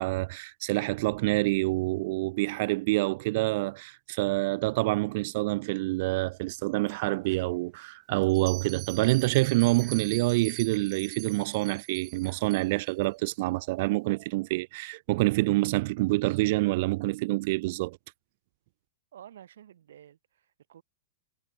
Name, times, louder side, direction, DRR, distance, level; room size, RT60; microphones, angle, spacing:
voice 1, 0.0-18.0, right 22 dB, 55° right, 0.4 m, -27 dB
sound 1, 6.8-8.4 8.8-13.3, right 7 dB, 15° right, 6.2 m, -58 dB
Bell, 8.3-12.9, right 17 dB, 35° right, 5.3 m, -43 dB
voice 2, 19.1-20.8, right 10 dB, 80° right, 6.8 m, -51 dB
hypercardioid pair, 140°, 0 cm